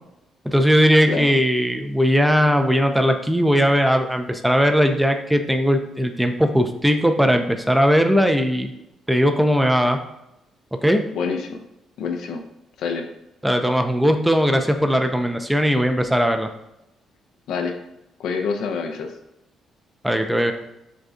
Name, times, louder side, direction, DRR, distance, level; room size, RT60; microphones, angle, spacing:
voice 1, 0.5-8.7 9.1-10.0 10.8-11.0 13.4-16.5 20.0-20.5, equal, 5° right, 6 dB, 0.5 m, -19 dB
voice 2, 11.1-11.6 12.0-12.4 12.8-13.0 17.5-17.8 18.2-19.1, left 5 dB, 80° left, 4 dB, 0.5 m, -26 dB
6.2 x 2.3 x 2.6 m, 0.86 s
cardioid pair, 90°, 0 cm